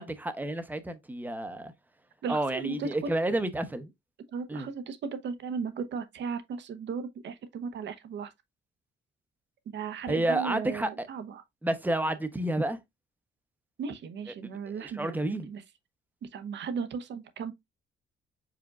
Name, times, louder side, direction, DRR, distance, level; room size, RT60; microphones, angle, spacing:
voice 1, 0.0-1.7 2.3-3.9 4.5-4.7 10.1-11.1 11.6-12.8 14.8-15.5, right 1 dB, 10° right, 0.8 m, -30 dB
voice 2, 2.2-3.1 4.3-8.3 9.7-11.4 13.8-15.6 16.2-17.5, right 5 dB, 65° right, 0.9 m, -36 dB
4.9 x 4.3 x 2.4 m
cardioid pair, 90°, 20 cm